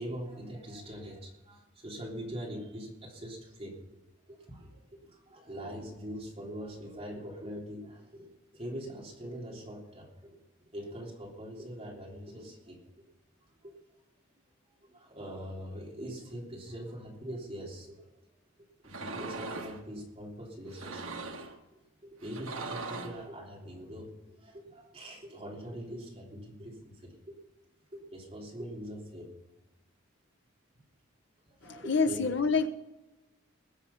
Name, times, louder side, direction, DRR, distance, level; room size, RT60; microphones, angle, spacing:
voice 1, 0.0-4.0 4.3-10.4 10.7-12.8 13.6-13.7 14.8-18.1 18.8-21.1 21.4-27.3 27.9-29.3 31.5-32.2, equal, 30° right, 3.3 m, -43 dB
sound 1, 18.8-19.8 20.7-21.6 22.2-23.2, right 3 dB, 85° right, 1.5 m, -40 dB
voice 2, 31.6-32.7, left 4 dB, 60° left, 1.0 m, -27 dB
20.5 x 7.1 x 5.7 m
head